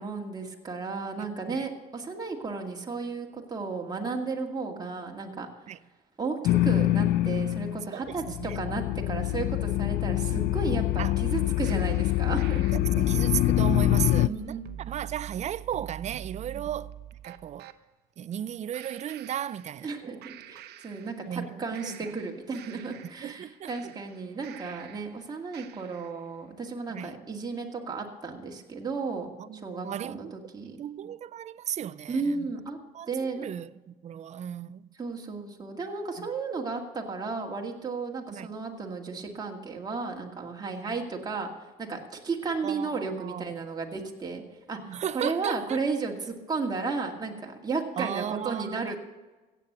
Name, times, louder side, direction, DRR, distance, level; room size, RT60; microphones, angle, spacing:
voice 1, 0.0-5.5 6.2-12.6 13.6-13.7 14.2-14.6 16.5-16.7 19.8-30.8 32.1-32.8 33.1-33.5 35.0-41.5 41.8-49.0, right 4 dB, 25° right, 2.2 m, -34 dB
sound 1, 6.4-7.9 8.1-14.3, left 15 dB, 70° left, 0.4 m, -25 dB
voice 2, 7.9-8.6 11.0-11.2 12.7-14.6 14.9-16.9 17.2-17.7 18.2-20.2 21.3-22.0 23.2-23.9 26.9-27.1 29.4-30.4 30.7-32.5 32.9-33.1 33.4-34.9 36.2-36.3 38.3-38.5 42.6-43.6 44.9-45.8 48.0-49.0, right 10 dB, 40° right, 0.5 m, -35 dB
sound 2, 11.6-17.8 18.7-20.0 20.2-21.4 21.7-25.2 25.5-26.2, right 11 dB, 75° right, 0.8 m, -44 dB
15.5 x 8.3 x 6.7 m
cardioid pair, 110°, 17 cm